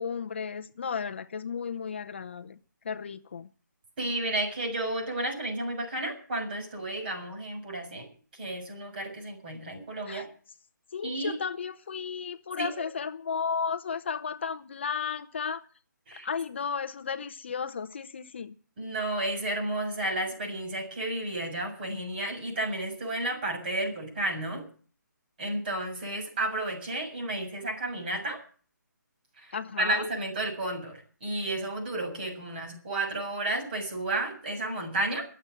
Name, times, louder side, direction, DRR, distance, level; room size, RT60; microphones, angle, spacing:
voice 1, 0.0-2.6 2.8-3.5 10.1-10.2 10.9-15.6 16.2-18.5 29.5-30.1, left 6 dB, 35° left, 0.7 m, -34 dB
voice 2, 4.0-8.1 8.3-10.3 11.0-11.4 12.6-12.7 16.1-16.3 18.8-24.6 25.4-28.4 29.4-35.3, right 1 dB, 30° right, 7.0 m, -32 dB
22.0 x 7.9 x 7.6 m
hypercardioid pair, 170°, 10 cm